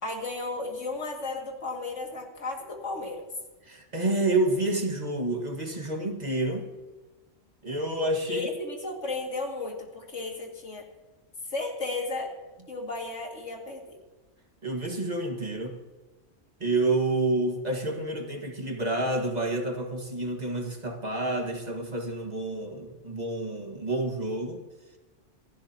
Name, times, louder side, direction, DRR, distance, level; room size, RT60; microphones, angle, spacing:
voice 1, 0.0-3.3 8.3-10.8 11.5-12.3 12.7-14.0, left 3 dB, 80° left, 1 dB, 2.7 m, -34 dB
voice 2, 3.6-6.7 7.6-8.5 14.6-15.8 16.6-24.6, right 2 dB, 35° right, 2 dB, 1.8 m, -29 dB
27.0 x 11.5 x 2.9 m, 1.2 s
omnidirectional pair, 1.2 m